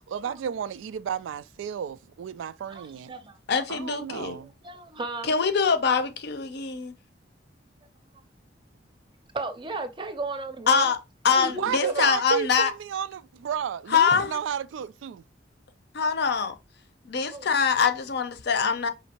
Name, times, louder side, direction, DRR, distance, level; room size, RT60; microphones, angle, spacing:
voice 1, 0.1-3.1 3.7-4.5 11.6-15.2, right 8 dB, 90° right, 0.3 m, -32 dB
voice 2, 2.7-3.4 4.4-5.3 9.3-10.9 11.3-12.1 14.1-14.2 17.3-17.5, right 2 dB, 25° right, 0.6 m, -35 dB
voice 3, 3.5-4.4 5.2-6.9 10.7-11.0 11.2-12.7 13.9-14.4 15.9-16.5 17.1-18.9, left 6 dB, 60° left, 0.6 m, -24 dB
5.1 x 2.7 x 2.9 m
head